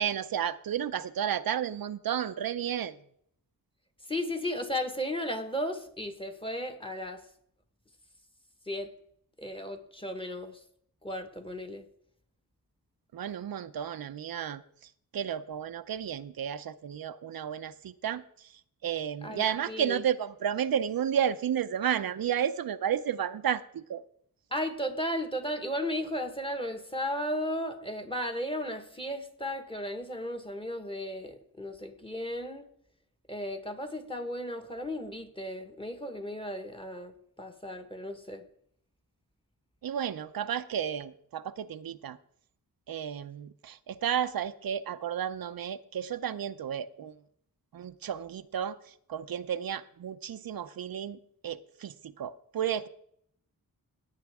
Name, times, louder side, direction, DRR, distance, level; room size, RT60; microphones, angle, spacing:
voice 1, 0.0-2.9 13.1-14.6 15.1-18.2 18.8-24.0 39.8-42.2 42.9-47.1 47.7-51.2 51.4-52.9, right 9 dB, 75° right, 11 dB, 0.6 m, -32 dB
voice 2, 4.1-7.2 8.7-8.9 9.4-10.6 11.0-11.8 19.2-20.0 24.5-32.7 33.3-38.4, equal, 15° left, 5 dB, 1.3 m, -35 dB
16.5 x 9.1 x 3.5 m, 0.67 s
wide cardioid pair, 110°, 36 cm